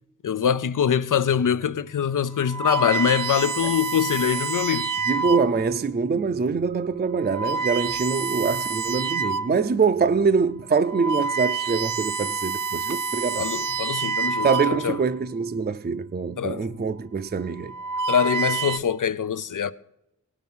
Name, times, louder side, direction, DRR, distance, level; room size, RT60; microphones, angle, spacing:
voice 1, 0.2-4.9 13.4-15.0 16.4-16.6 18.1-19.7, left 8 dB, 90° left, 0.6 m, -24 dB
sound 1, 1.4-1.7 2.3-5.7 6.4-6.6 7.2-9.6 10.1-10.2 10.7-15.2 16.2-16.6 17.5-18.8, right 4 dB, 85° right, 0.7 m, -28 dB
voice 2, 5.1-13.5 14.4-17.7, right 5 dB, 35° right, 0.4 m, -24 dB
18.0 x 6.1 x 5.5 m
wide cardioid pair, 90°, 30 cm